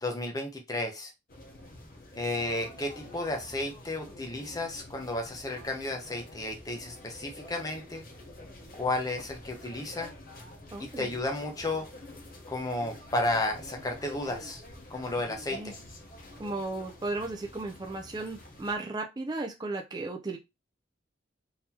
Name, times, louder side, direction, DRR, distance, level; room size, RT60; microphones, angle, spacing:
voice 1, 0.0-1.1 2.2-8.0 8.8-10.1 11.0-11.9 12.5-14.6 14.9-15.7, left 2 dB, 20° left, 2 dB, 0.7 m, -33 dB
sound 1, 1.3-18.8, left 1 dB, 45° left, 0.8 m, -48 dB
voice 2, 10.7-11.1 15.5-15.7 16.4-20.4, right 2 dB, 20° right, 2 dB, 0.4 m, -35 dB
3.8 x 2.8 x 2.8 m, 0.23 s
head